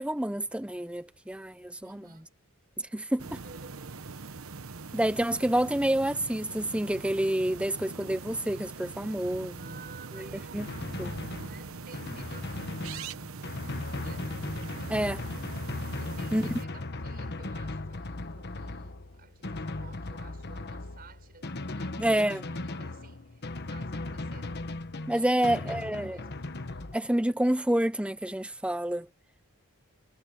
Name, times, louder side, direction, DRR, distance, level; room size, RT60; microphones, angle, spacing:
voice 1, 0.0-2.1 2.8-3.3 4.9-9.6 10.1-10.3 10.5-10.7 11.0-11.1 14.9-15.2 16.3-16.5 22.0-22.4 25.1-26.2 26.9-29.1, right 1 dB, 5° right, 0.8 m, -28 dB
voice 2, 1.8-2.3 3.1-4.3 9.5-13.4 13.9-14.3 16.0-24.6 25.1-26.4, right 4 dB, 45° right, 6.2 m, -54 dB
sound 1, 3.2-16.6, right 4 dB, 70° right, 1.0 m, -42 dB
Drum, 10.6-27.0, left 2 dB, 50° left, 1.3 m, -37 dB
head